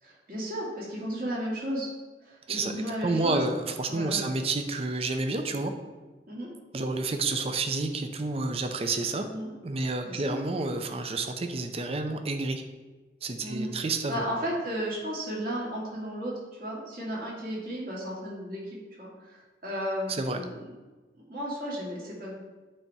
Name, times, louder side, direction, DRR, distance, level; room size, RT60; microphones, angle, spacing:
voice 1, 0.0-1.9 2.2-3.4 3.9-4.3 6.3-6.5 9.2-9.5 10.0-10.3 13.4-13.7 14.1-16.3 16.6-18.6 19.0-20.6 21.3-22.3, equal, 50° right, -6 dB, 2.2 m, -34 dB
voice 2, 3.0-5.7 6.7-9.3 9.6-12.6 13.2-14.2 20.1-20.4, right 3 dB, 35° right, 7 dB, 0.5 m, -29 dB
8.6 x 3.5 x 4.2 m, 1.2 s
head